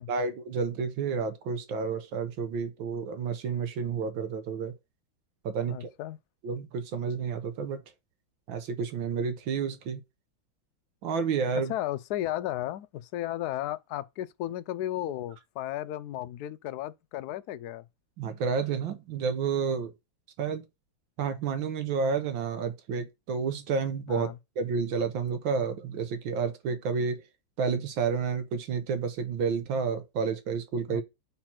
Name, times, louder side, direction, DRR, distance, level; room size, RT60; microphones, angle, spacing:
voice 1, 0.1-4.7 5.5-5.9 6.4-7.8 8.5-10.0 11.0-11.7 18.2-19.9 20.4-20.6 21.2-24.3 24.6-27.2 27.6-31.0, right 5 dB, 75° right, 1.7 m, -30 dB
voice 2, 5.6-6.2 11.5-17.9 24.1-24.4 30.9-31.0, left 13 dB, 75° left, 0.9 m, -34 dB
4.5 x 4.2 x 5.8 m
omnidirectional pair, 2.2 m